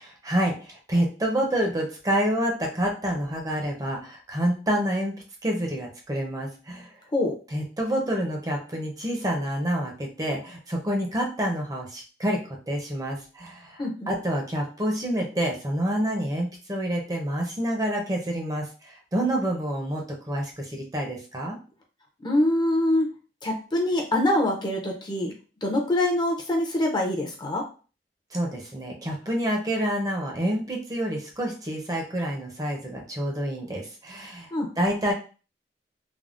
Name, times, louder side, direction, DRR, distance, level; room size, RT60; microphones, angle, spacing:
voice 1, 0.2-5.2 5.4-6.9 7.5-21.6 28.3-34.5 34.8-35.1, right 1 dB, 20° right, 0 dB, 0.6 m, -28 dB
voice 2, 22.2-23.1 23.4-25.3 25.6-27.6 34.5-34.7, left 1 dB, 25° left, 0 dB, 0.5 m, -24 dB
3.4 x 2.1 x 2.4 m, 0.36 s
head